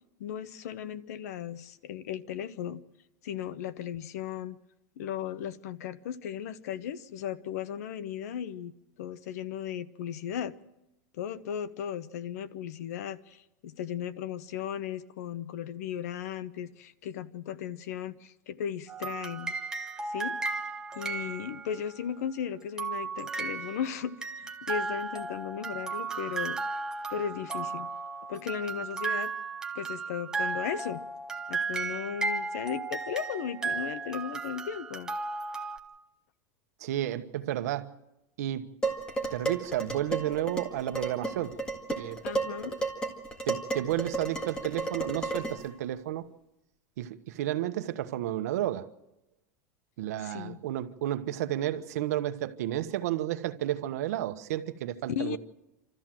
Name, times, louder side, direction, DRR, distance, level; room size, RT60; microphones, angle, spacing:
voice 1, 0.2-2.8 3.2-4.6 5.0-10.5 11.1-19.6 20.1-20.3 20.9-26.6 27.1-27.9 28.3-29.3 29.7-31.0 31.5-35.1 42.2-42.8 50.2-50.6 55.1-55.4, left 9 dB, 75° left, 0.9 m, -36 dB
sound 1, 18.9-22.0 22.8-35.8, right 4 dB, 10° right, 1.0 m, -35 dB
voice 2, 36.8-37.9 38.4-38.6 39.3-41.5 42.0-42.2 43.5-46.3 47.0-48.9 50.0-55.4, right 13 dB, 75° right, 1.1 m, -32 dB
Dishes pots and pans, 38.8-45.7, right 3 dB, 10° left, 1.8 m, -33 dB
27.5 x 13.5 x 7.6 m
supercardioid pair, 165°, 9 cm